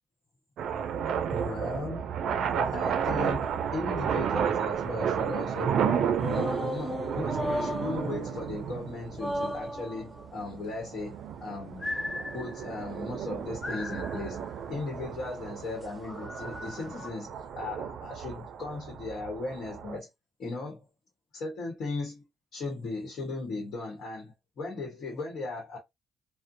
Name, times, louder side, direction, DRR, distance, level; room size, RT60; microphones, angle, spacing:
sound 1, 0.6-20.0, right 8 dB, 75° right, 0.4 m, -32 dB
voice 1, 1.3-2.0 2.7-11.9 12.3-20.1 20.4-20.8 21.3-22.2 22.5-25.8, left 3 dB, 70° left, 1.0 m, -37 dB
sound 2, 6.2-8.8 9.2-10.3 11.8-12.8 13.6-14.4 15.8-17.1, left 1 dB, 20° left, 0.4 m, -36 dB
2.5 x 2.0 x 2.5 m
cardioid pair, 90°, 0 cm